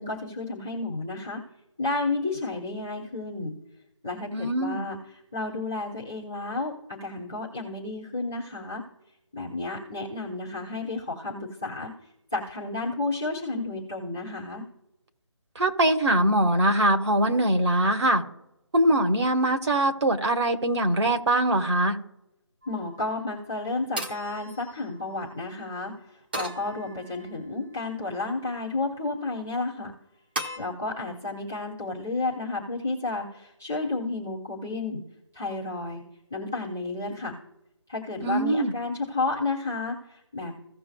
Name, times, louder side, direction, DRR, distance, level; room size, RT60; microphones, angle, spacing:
voice 1, 0.0-1.4 1.8-3.5 4.0-5.0 5.3-8.8 9.3-11.9 12.3-14.6 22.7-29.9 30.6-35.0 35.3-36.0 36.3-37.4 37.9-40.5, left 3 dB, 5° left, -7 dB, 0.4 m, -31 dB
voice 2, 4.3-4.8 15.5-18.2 18.7-22.0 38.2-38.7, right 1 dB, 65° right, 5 dB, 1.5 m, -22 dB
sound 1, 22.6-23.1 24.0-25.3 26.3-27.4 28.0-28.6 30.4-30.6, right 1 dB, 20° right, 0.8 m, -38 dB
16.5 x 6.1 x 2.3 m, 0.89 s
figure-of-eight pair, 175°, 15 cm